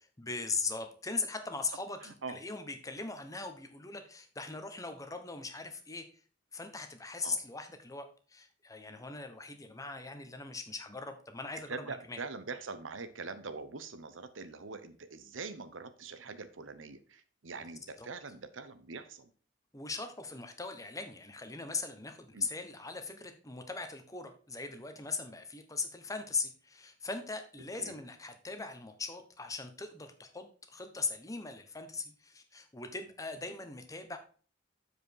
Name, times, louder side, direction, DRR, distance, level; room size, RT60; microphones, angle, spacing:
voice 1, 0.2-6.1 6.5-12.2 18.0-18.1 19.7-34.2, left 4 dB, 15° left, 7 dB, 1.0 m, -40 dB
voice 2, 2.0-2.4 7.2-7.4 11.7-19.3 22.3-22.5 27.8-28.0, right 4 dB, 90° right, 11 dB, 0.8 m, -43 dB
7.4 x 5.0 x 4.7 m, 0.41 s
head